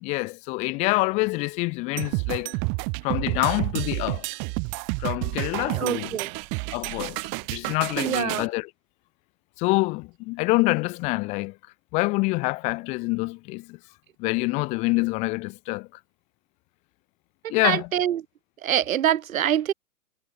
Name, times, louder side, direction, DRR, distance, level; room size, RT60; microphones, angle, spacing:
voice 1, 0.0-2.6 3.0-4.3 5.0-6.2 6.7-7.2 7.5-8.7 9.6-11.5 11.9-13.8 14.2-15.9 17.5-17.9, left 25 dB, 15° left, 0.7 m, -26 dB
sound 1, 2.0-8.5, right 40 dB or more, 25° right, 1.6 m, -30 dB
voice 2, 5.7-6.3 8.0-8.4 17.6-18.2 18.6-19.7, right 10 dB, 60° right, 1.4 m, -24 dB
hypercardioid pair, 140°, 46 cm